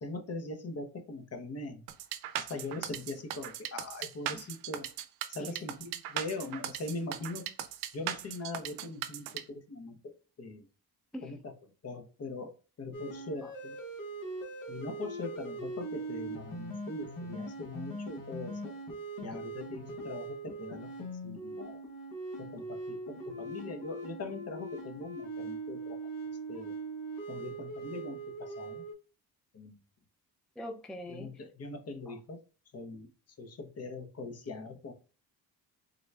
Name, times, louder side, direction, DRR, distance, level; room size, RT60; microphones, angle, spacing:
voice 1, 0.0-1.8 2.3-4.9 5.3-7.5 7.9-10.1 10.4-10.7 11.2-11.5 11.8-13.8 14.7-18.7 19.2-20.9 21.2-21.8 22.4-26.0 26.5-26.7 27.3-28.8 29.5-29.8 31.1-32.4 32.7-33.1 33.4-34.9, left 3 dB, 40° left, 0.8 m, -41 dB
sound 1, 1.9-9.4, right 11 dB, 90° right, 0.5 m, -38 dB
sound 2, 12.9-28.9, right 2 dB, 60° left, 1.2 m, -41 dB
voice 2, 30.6-31.3 32.1-32.2, left 1 dB, ahead, 0.3 m, -43 dB
3.8 x 2.2 x 3.2 m
cardioid pair, 90°, 37 cm